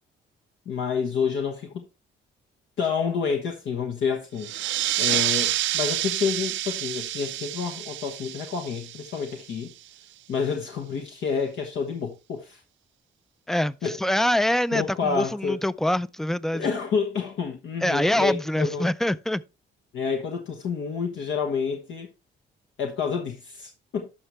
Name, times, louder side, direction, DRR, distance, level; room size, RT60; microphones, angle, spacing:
voice 1, 0.7-1.8 2.8-4.5 5.0-9.7 10.3-12.6 13.8-13.9 14.7-15.6 16.5-18.9 19.9-22.1 22.8-24.1, left 6 dB, 75° left, 1.3 m, -29 dB
sound 1, 4.4-9.6, right 13 dB, 75° right, 0.5 m, -28 dB
voice 2, 13.5-16.7 17.8-19.4, left 1 dB, ahead, 0.3 m, -25 dB
11.0 x 5.8 x 3.2 m
cardioid pair, 90°, 20 cm